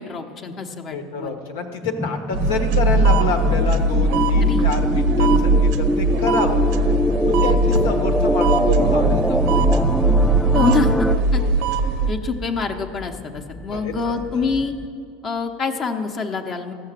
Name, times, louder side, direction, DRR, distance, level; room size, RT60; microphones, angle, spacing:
voice 1, 0.0-1.3 4.4-4.6 7.3-7.6 10.5-11.4 12.1-14.7 15.2-16.7, left 4 dB, 40° left, 5 dB, 0.9 m, -26 dB
voice 2, 0.9-6.7 7.2-9.7 11.4-11.6 13.7-14.4, left 4 dB, 90° left, 5 dB, 1.3 m, -28 dB
sound 1, 1.8-11.2, left 1 dB, 5° left, 0.3 m, -23 dB
sound 2, 2.3-12.1, right 2 dB, 70° right, 0.7 m, -19 dB
sound 3, 9.4-14.9, left 2 dB, 20° left, 1.2 m, -39 dB
14.5 x 5.7 x 7.5 m, 2.5 s
supercardioid pair, 110°, 0 cm